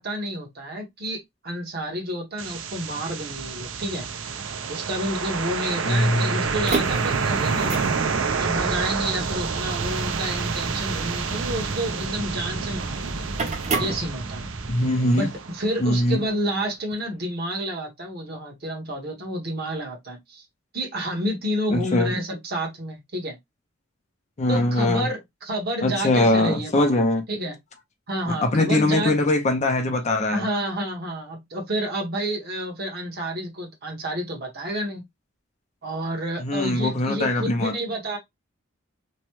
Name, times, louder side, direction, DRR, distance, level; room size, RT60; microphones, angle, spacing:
voice 1, 0.0-4.1 4.7-7.9 8.4-13.2 13.8-14.4 15.1-20.4 20.7-23.4 24.5-27.0 27.3-27.6 28.1-29.1 30.3-35.0 35.8-38.2, right 1 dB, 50° right, 1.1 m, -30 dB
sound 1, 2.4-16.3, right 5 dB, 80° right, 0.5 m, -29 dB
voice 2, 5.8-6.4 14.7-15.3 15.8-16.2 21.7-22.1 24.4-25.1 25.8-27.2 28.3-30.4 36.4-37.7, left 1 dB, 35° left, 0.5 m, -22 dB
sound 2, 6.4-14.7, right 3 dB, 35° right, 0.5 m, -31 dB
3.0 x 2.1 x 3.0 m
head